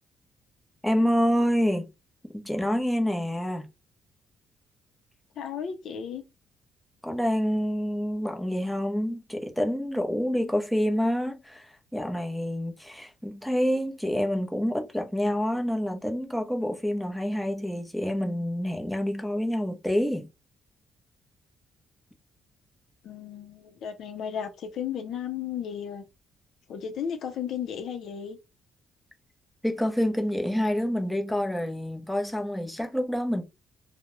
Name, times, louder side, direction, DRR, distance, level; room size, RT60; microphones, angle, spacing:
voice 1, 0.8-1.9 2.3-3.7 7.0-20.3 29.6-33.4, equal, ahead, 0.6 m, -27 dB
voice 2, 5.4-6.2 23.0-26.0 26.7-28.4, left 8 dB, 75° left, 0.5 m, -34 dB
2.3 x 2.0 x 2.9 m
cardioid pair, 90°, 0 cm